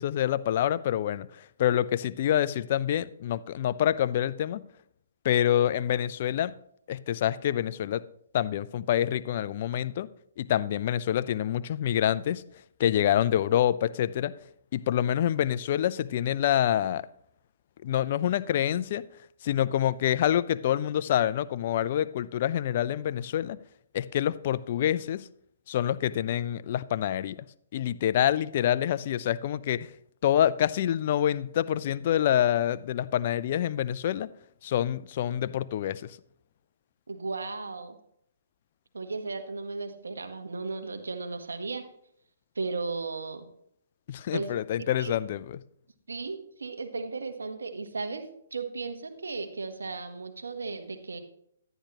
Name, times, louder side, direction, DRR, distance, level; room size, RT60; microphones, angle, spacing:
voice 1, 0.0-4.6 5.2-6.5 6.9-8.0 8.3-10.1 10.4-12.4 12.8-14.3 14.7-17.1 17.8-19.0 19.4-23.6 23.9-25.3 25.7-27.4 27.7-29.9 30.2-34.3 34.6-36.2 44.1-45.6, left 11 dB, 45° left, 16 dB, 0.4 m, -26 dB
voice 2, 37.1-38.0 38.9-41.8 42.5-43.5 44.3-44.5 45.0-45.1 46.1-48.2 48.5-51.2, right 4 dB, 80° right, 6 dB, 1.2 m, -35 dB
10.0 x 10.0 x 3.0 m, 0.71 s
hypercardioid pair, 135°, 0 cm